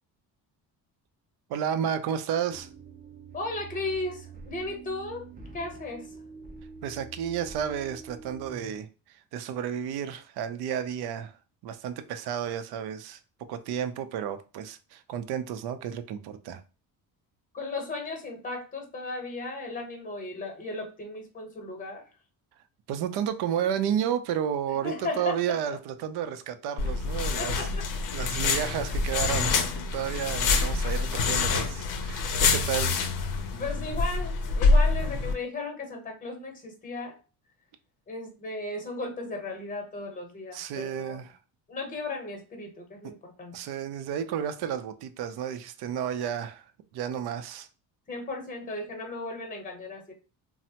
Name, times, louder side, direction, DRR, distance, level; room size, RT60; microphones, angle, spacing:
voice 1, 1.5-2.7 6.8-11.4 11.6-13.2 13.5-16.6 22.9-27.6 28.1-33.0 40.5-41.4 43.5-46.6 46.9-47.7, right 9 dB, 75° right, 0.5 m, -32 dB
sound 1, 2.5-8.8, right 4 dB, 20° right, 0.5 m, -46 dB
voice 2, 3.3-5.3 5.5-6.1 17.5-22.1 24.7-25.4 27.4-27.9 33.5-37.2 38.1-41.3 41.7-43.6 48.1-50.1, left 2 dB, 20° left, 0.8 m, -36 dB
sound 2, 26.8-35.3, left 4 dB, 55° left, 0.6 m, -26 dB
3.2 x 2.0 x 2.8 m
cardioid pair, 140°, 39 cm